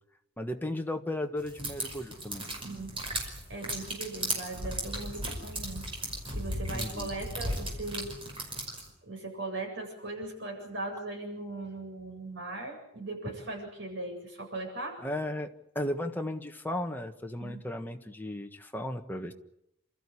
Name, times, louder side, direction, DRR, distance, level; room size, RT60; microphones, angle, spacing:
voice 1, 0.4-2.5 6.7-7.1 15.0-19.3, left 1 dB, 10° left, 4 dB, 1.4 m, -35 dB
sound 1, 1.5-8.9, right 1 dB, 25° right, 5.5 m, -36 dB
voice 2, 2.5-2.9 3.5-5.8 6.3-8.1 9.0-15.0 17.4-17.6, right 2 dB, 60° right, 2 dB, 7.9 m, -39 dB
29.0 x 14.0 x 9.9 m, 0.82 s
head